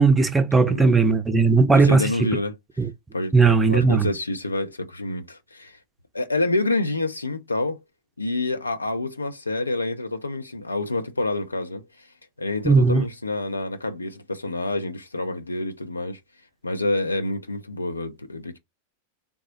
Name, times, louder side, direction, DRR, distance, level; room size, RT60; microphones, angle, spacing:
voice 1, 0.0-2.1 2.8-2.9 3.3-4.1 12.6-13.0, right 4 dB, 15° right, 0.5 m, -17 dB
voice 2, 0.5-1.0 1.7-2.6 3.1-5.8 6.1-7.8 8.2-12.1 12.4-16.2 16.6-18.6, left 2 dB, 80° left, 0.5 m, -28 dB
3.5 x 2.0 x 3.8 m
figure-of-eight pair, 90°, 0 cm